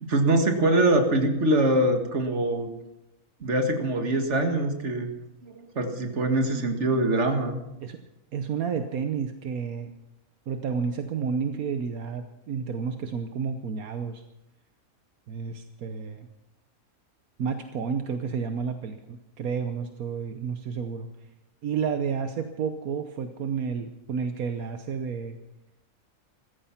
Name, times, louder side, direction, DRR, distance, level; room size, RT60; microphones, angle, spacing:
voice 1, 0.0-2.7 3.4-5.1 5.4-7.6, right 1 dB, 50° right, 5 dB, 2.1 m, -23 dB
voice 2, 8.3-9.9 10.5-14.2 15.3-16.3 17.4-21.1 21.6-25.4, right 6 dB, 80° right, 7 dB, 1.4 m, -31 dB
15.0 x 14.5 x 5.8 m, 0.90 s
omnidirectional pair, 1.5 m